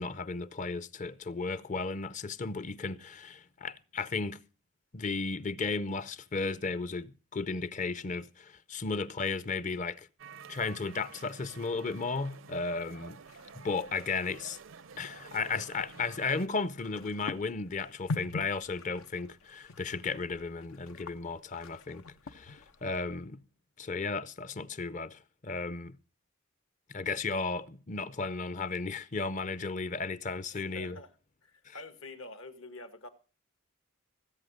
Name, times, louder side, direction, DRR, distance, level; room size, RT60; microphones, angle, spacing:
voice 1, 0.0-4.4 4.9-10.1 10.5-13.2 13.5-14.6 15.0-23.4 23.8-26.0 26.9-31.0 31.6-31.8, left 4 dB, 35° left, 0.6 m, -34 dB
sound 1, 10.2-16.5, right 5 dB, 70° right, 0.6 m, -50 dB
sound 2, 13.2-23.0, left 3 dB, 90° left, 1.0 m, -45 dB
voice 2, 30.5-31.2 31.4-33.1, left 2 dB, 75° left, 1.8 m, -47 dB
17.5 x 8.3 x 6.4 m
head